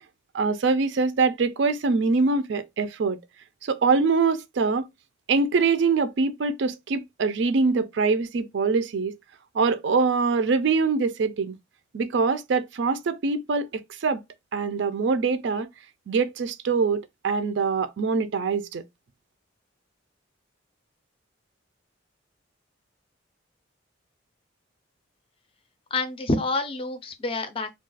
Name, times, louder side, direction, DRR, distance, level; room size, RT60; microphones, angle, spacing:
voice 1, 0.3-3.2 3.6-4.9 5.3-9.1 9.5-11.5 11.9-14.2 14.5-15.7 16.1-18.8, right 4 dB, 65° right, 0.4 m, -24 dB
voice 2, 25.9-27.8, left 2 dB, 30° left, 0.4 m, -28 dB
2.3 x 2.3 x 3.9 m
head